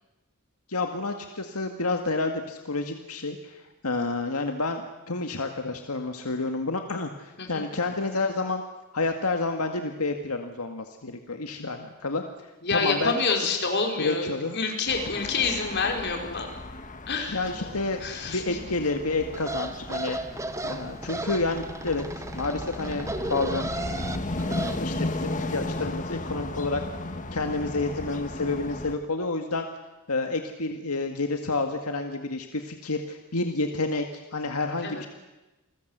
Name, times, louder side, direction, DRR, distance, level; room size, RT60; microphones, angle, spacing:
voice 1, 0.7-8.6 8.9-12.2 12.7-13.1 14.0-14.6 17.3-20.2 20.6-23.7 24.8-26.8 27.3-29.7 30.1-35.1, left 3 dB, 85° left, 5 dB, 2.0 m, -29 dB
voice 2, 12.6-16.5 17.1-17.7 18.0-18.6 34.8-35.0, left 4 dB, 50° left, 3 dB, 4.9 m, -28 dB
sound 1, 14.9-29.0, left 2 dB, 35° left, 1.7 m, -35 dB
sound 2, 19.3-24.8, right 2 dB, 15° right, 1.2 m, -35 dB
29.0 x 20.5 x 8.1 m, 1.1 s
head